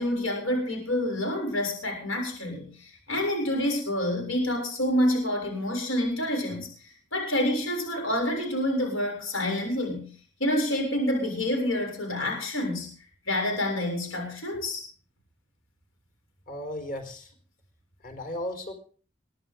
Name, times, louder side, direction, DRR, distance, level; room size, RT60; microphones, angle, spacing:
voice 1, 0.0-6.7 7.1-10.1 10.4-12.9 13.3-14.8, left 1 dB, 90° left, 3 dB, 7.0 m, -28 dB
voice 2, 16.5-17.3 18.0-18.7, left 1 dB, 45° left, 6 dB, 4.6 m, -35 dB
22.5 x 12.5 x 3.8 m, 0.41 s
head